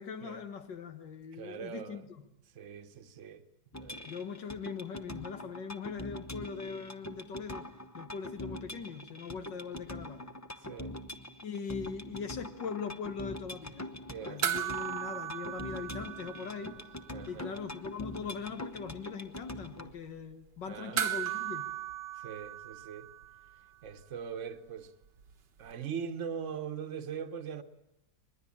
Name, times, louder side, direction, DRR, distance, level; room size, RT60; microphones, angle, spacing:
voice 1, 0.0-2.0 4.1-7.7 7.9-10.3 11.4-14.0 14.2-16.8 17.3-21.7, left 6 dB, 85° left, 2.2 m, -41 dB
voice 2, 1.3-2.1 2.5-3.4 3.8-4.1 10.6-11.0 14.1-14.4 17.1-17.6 20.7-21.0 22.1-23.1 23.8-24.9 25.6-27.6, right 7 dB, 45° right, 1.3 m, -41 dB
sound 1, 3.7-19.9, left 1 dB, 15° left, 0.6 m, -44 dB
sound 2, 14.4-17.1 17.3-17.4 21.0-23.6 25.7-25.8, right 11 dB, 80° right, 1.8 m, -36 dB
23.5 x 21.0 x 8.6 m
omnidirectional pair, 1.9 m